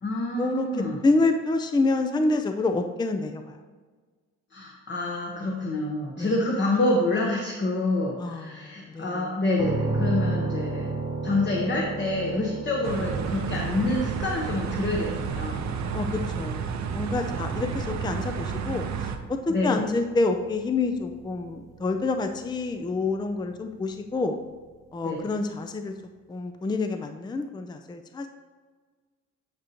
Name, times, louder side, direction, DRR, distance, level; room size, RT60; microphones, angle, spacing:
voice 1, 0.0-1.0 4.5-15.7 17.3-17.4 19.5-19.8 25.0-25.2, left 2 dB, 40° left, -2 dB, 1.1 m, -27 dB
voice 2, 1.0-3.5 6.2-6.4 8.2-9.2 15.9-24.4 24.9-25.9 26.3-28.3, left 3 dB, 15° left, 6 dB, 0.5 m, -27 dB
sound 1, 9.6-23.3, right 3 dB, 10° right, 1.3 m, -35 dB
sound 2, 12.8-19.2, right 6 dB, 65° right, 0.8 m, -31 dB
9.3 x 5.0 x 3.0 m, 1.4 s
cardioid pair, 90°, 30 cm